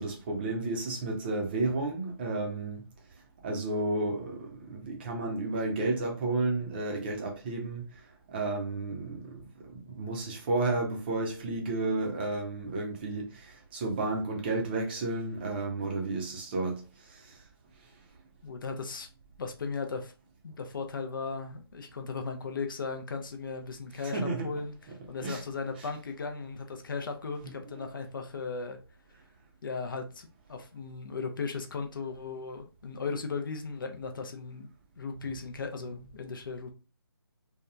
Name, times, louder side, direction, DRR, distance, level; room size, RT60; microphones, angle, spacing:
voice 1, 0.0-2.8 3.4-7.8 8.3-9.4 9.7-17.4 24.0-24.5 25.2-25.4 27.7-27.9, right 2 dB, 25° right, 0.5 m, -32 dB
voice 2, 18.4-19.1 19.4-20.1 20.4-24.7 25.1-28.8 29.6-34.7 35.0-36.7, left 4 dB, 55° left, 0.5 m, -36 dB
2.8 x 2.2 x 2.3 m
figure-of-eight pair, 150°, 13 cm